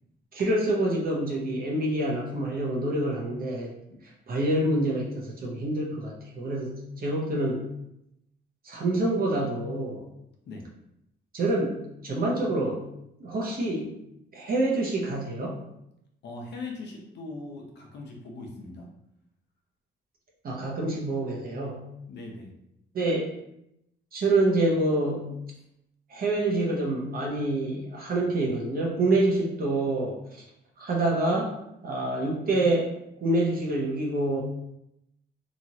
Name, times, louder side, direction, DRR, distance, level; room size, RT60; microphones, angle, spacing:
voice 1, 0.3-3.7 4.3-7.7 8.6-10.0 11.3-12.8 13.2-13.9 14.3-15.6 20.4-21.8 22.9-23.3 24.1-25.3 26.1-30.4 30.8-31.5 31.8-32.9 33.2-34.4, right 2 dB, 50° right, -2 dB, 0.8 m, -27 dB
voice 2, 16.2-18.9 22.1-22.5, left 3 dB, 60° left, 0 dB, 0.7 m, -40 dB
3.0 x 2.4 x 2.8 m, 0.81 s
cardioid pair, 90°, 20 cm